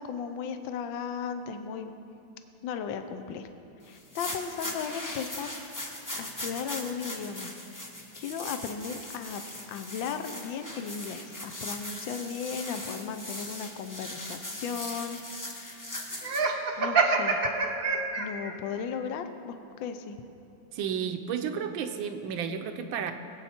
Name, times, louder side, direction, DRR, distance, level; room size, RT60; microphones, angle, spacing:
voice 1, 0.0-1.9 2.6-3.5 3.9-5.5 6.2-7.5 8.1-9.4 9.7-16.1 16.8-17.4 18.2-20.2, left 6 dB, 80° left, 8 dB, 1.4 m, -36 dB
sound 1, 3.9-16.4, left 1 dB, 25° left, 0.4 m, -39 dB
Laughter, 16.2-18.5, right 4 dB, 50° right, 0.7 m, -26 dB
voice 2, 20.7-23.1, right 7 dB, 80° right, 7 dB, 1.6 m, -32 dB
21.0 x 8.2 x 4.3 m, 2.8 s
omnidirectional pair, 2.1 m